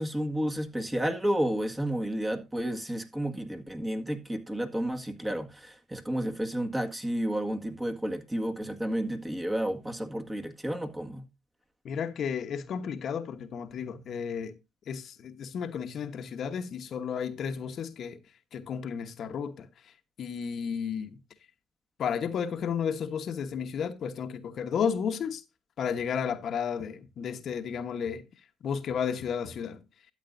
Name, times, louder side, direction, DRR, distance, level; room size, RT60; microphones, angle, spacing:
voice 1, 0.0-11.2, right 1 dB, 15° right, 1.8 m, -31 dB
voice 2, 11.8-14.5 14.9-18.2 18.5-19.7 20.2-21.2 22.0-25.4 25.8-28.3 28.6-29.8, left 7 dB, 55° left, 1.1 m, -32 dB
13.0 x 8.1 x 2.6 m
supercardioid pair, 80°, 0 cm